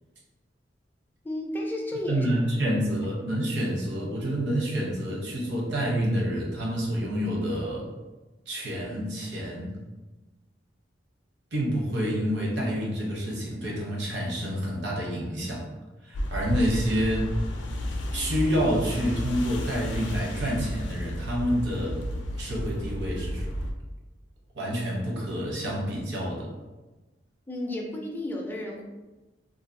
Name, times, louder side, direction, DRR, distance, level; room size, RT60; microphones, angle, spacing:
voice 1, 1.2-2.3 2.7-2.8 27.5-28.9, left 1 dB, 10° left, -1 dB, 0.4 m, -32 dB
voice 2, 2.1-7.9 8.5-9.7 11.5-15.6 16.0-17.3 18.1-22.0 22.4-23.4 24.6-26.5, equal, 65° right, -3 dB, 0.7 m, -28 dB
sound 1, 16.1-23.7, equal, 85° left, 0.4 m, -32 dB
2.6 x 2.3 x 2.5 m, 1.1 s
head